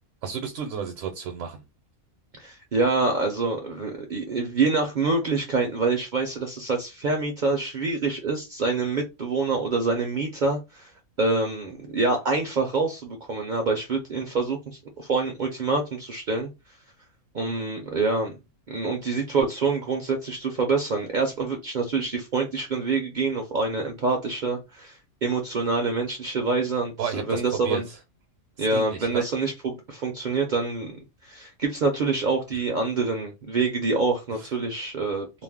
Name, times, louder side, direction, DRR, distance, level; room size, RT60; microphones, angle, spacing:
voice 1, 0.2-1.6 27.0-28.0 28.6-29.3 34.4-34.5, right 6 dB, 75° right, 0.9 m, -32 dB
voice 2, 2.4-10.9 11.2-16.5 17.3-18.4 18.7-27.9 28.6-35.3, right 3 dB, 60° right, 0.5 m, -26 dB
2.5 x 2.0 x 3.4 m
omnidirectional pair, 1.4 m